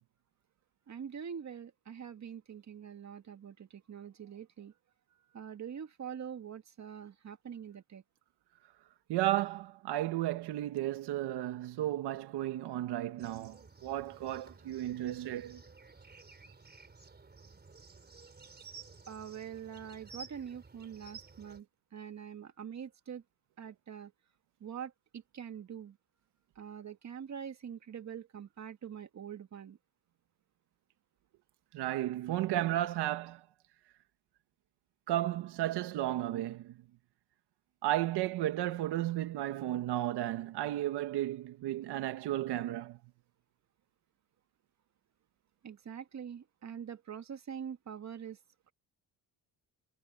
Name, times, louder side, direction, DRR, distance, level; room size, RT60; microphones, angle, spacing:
voice 1, 0.9-4.7 5.3-8.0 19.1-21.7 21.9-23.2 23.6-24.1 24.6-25.9 26.6-29.8 45.6-48.4, right 8 dB, 45° right, 2.0 m, -44 dB
voice 2, 9.1-15.6 31.7-33.4 35.1-36.7 37.8-43.0, right 14 dB, 80° right, 1.7 m, -33 dB
sound 1, 13.2-21.6, right 4 dB, 25° right, 4.4 m, -54 dB
cardioid pair, 90°, 39 cm